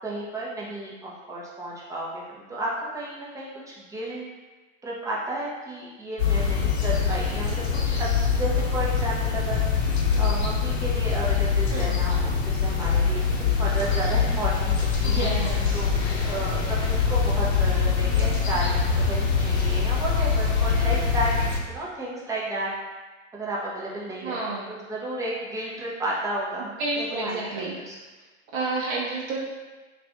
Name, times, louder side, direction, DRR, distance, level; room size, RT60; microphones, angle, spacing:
voice 1, 0.0-4.3 4.8-15.9 16.2-21.3 21.7-22.7 23.3-24.4 24.7-27.9, right 2 dB, 10° right, -5 dB, 0.6 m, -33 dB
sound 1, 6.2-21.6, left 6 dB, 55° left, 0.9 m, -24 dB
voice 2, 15.0-15.8 24.2-24.6 26.6-27.8 28.5-29.4, right 3 dB, 45° right, -5 dB, 0.7 m, -30 dB
3.3 x 2.4 x 3.4 m, 1.2 s
figure-of-eight pair, 90°, 38 cm